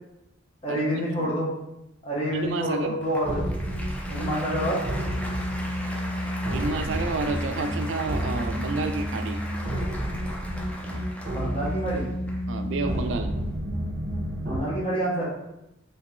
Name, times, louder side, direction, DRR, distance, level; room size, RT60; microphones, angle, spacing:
voice 1, 0.6-1.5 2.0-3.5 4.1-4.8 10.8-10.9 11.3-12.1 14.4-15.2, equal, 30° left, -5 dB, 1.0 m, -27 dB
voice 2, 2.3-3.0 6.5-9.4 12.5-13.3, right 3 dB, 70° right, 6 dB, 0.4 m, -30 dB
Applause, 3.0-13.6, equal, 5° left, 0.4 m, -39 dB
sound 1, 3.2-14.6, equal, 45° right, 0.9 m, -30 dB
3.5 x 2.8 x 3.2 m, 0.88 s
head